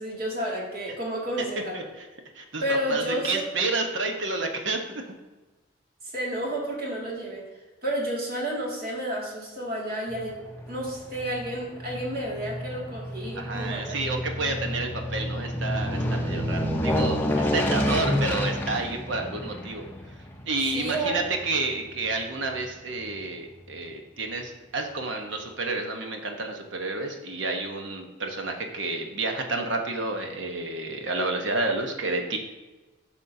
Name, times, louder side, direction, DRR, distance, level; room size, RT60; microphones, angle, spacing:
voice 1, 0.0-1.9 2.6-3.4 6.1-7.4 7.8-10.4 10.7-14.1 17.8-18.2 20.7-21.2, right 1 dB, 45° right, -3 dB, 2.2 m, -31 dB
voice 2, 1.7-2.1 2.4-5.0 13.4-19.8 20.5-32.4, right 3 dB, 70° right, 3 dB, 1.0 m, -30 dB
Aircraft, 10.1-22.6 23.0-23.1, equal, 10° left, 0.6 m, -30 dB
9.8 x 6.2 x 2.7 m, 1.2 s
head